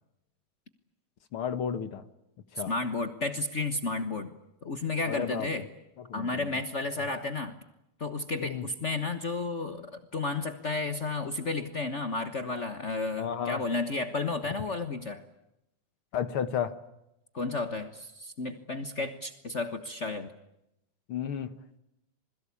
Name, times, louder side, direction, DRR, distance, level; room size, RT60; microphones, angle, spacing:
voice 1, 1.3-2.0 2.5-2.7 5.1-5.5 6.1-6.5 8.4-8.6 13.2-13.6 16.1-16.8 21.1-21.6, left 8 dB, 55° left, 12 dB, 1.7 m, -32 dB
voice 2, 2.7-4.3 4.6-5.7 6.1-7.5 8.0-15.2 17.3-20.3, left 3 dB, 85° left, 9 dB, 0.6 m, -32 dB
27.5 x 21.5 x 8.5 m, 0.85 s
omnidirectional pair, 3.5 m